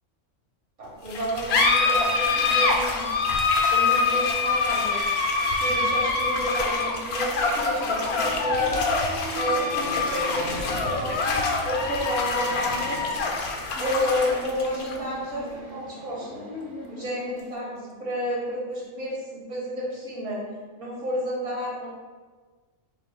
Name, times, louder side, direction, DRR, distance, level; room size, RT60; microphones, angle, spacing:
voice 1, 0.8-3.3 3.7-5.0 5.6-8.8 9.3-13.3 13.8-16.5 16.9-17.7 18.0-20.4 20.8-21.9, equal, 70° right, -5 dB, 1.6 m, -31 dB
sound 1, 1.1-18.0, left 4 dB, 65° left, 0.7 m, -25 dB
sound 2, 4.0-17.1, right 1 dB, 45° right, 0.6 m, -41 dB
5.7 x 2.0 x 3.4 m, 1.4 s
omnidirectional pair, 1.3 m